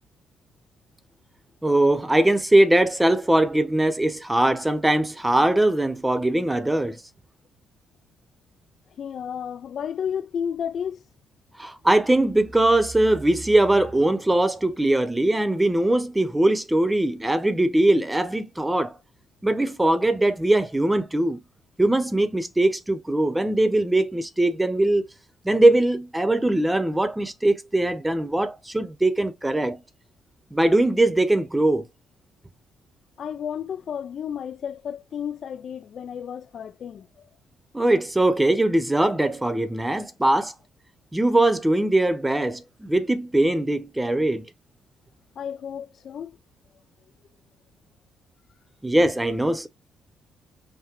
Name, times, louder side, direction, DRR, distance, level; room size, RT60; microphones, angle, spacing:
voice 1, 1.6-7.0 11.6-19.0 19.4-21.4 21.8-25.0 25.4-29.8 30.5-31.9 37.7-40.5 41.1-44.5 48.8-49.7, right 1 dB, 10° right, 0.7 m, -21 dB
voice 2, 9.0-11.0 33.2-37.3 45.4-46.4, left 8 dB, 60° left, 0.3 m, -32 dB
5.7 x 2.1 x 3.0 m
cardioid pair, 90°, 0 cm